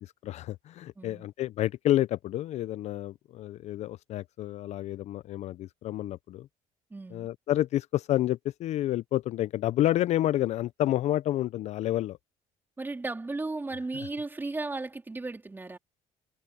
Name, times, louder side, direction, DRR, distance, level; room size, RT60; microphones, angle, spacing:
voice 1, 0.0-6.5 7.1-12.2, left 13 dB, 55° left, 0.4 m, -29 dB
voice 2, 1.0-1.3 6.9-7.3 12.8-15.8, right 3 dB, 15° right, 3.6 m, -35 dB
cardioid pair, 130°, 13 cm